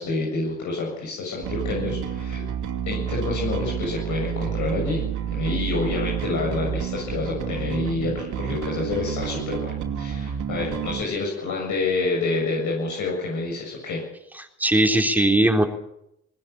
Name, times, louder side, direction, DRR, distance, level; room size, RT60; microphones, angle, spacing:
voice 1, 0.0-2.4 2.9-5.0 5.3-14.0, left 3 dB, 75° left, -2 dB, 7.6 m, -28 dB
Bass guitar, 1.4-11.0, right 9 dB, 80° right, 2.6 m, -29 dB
voice 2, 14.4-15.6, right 1 dB, 5° right, 3 dB, 3.8 m, -19 dB
20.0 x 19.0 x 8.7 m, 0.81 s
cardioid pair, 90°, 30 cm